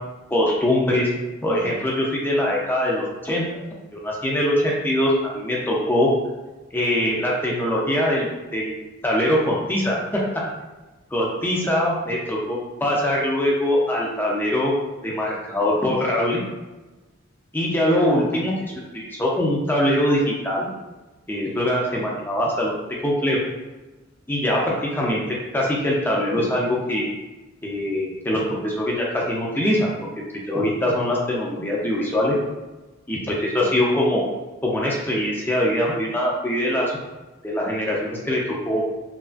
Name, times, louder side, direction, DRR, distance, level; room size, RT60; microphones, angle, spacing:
voice 1, 0.3-1.1 1.4-3.4 3.9-6.1 6.7-8.3 8.5-8.8 9.0-10.2 11.1-14.7 15.0-16.4 17.5-18.6 18.9-20.7 21.3-22.8 23.0-23.5 24.3-25.2 25.5-27.1 27.6-29.9 30.5-32.4 33.1-34.3 34.6-37.0 37.4-38.8, left 1 dB, 10° left, -4 dB, 0.4 m, -22 dB
2.9 x 2.3 x 2.4 m, 1.2 s
head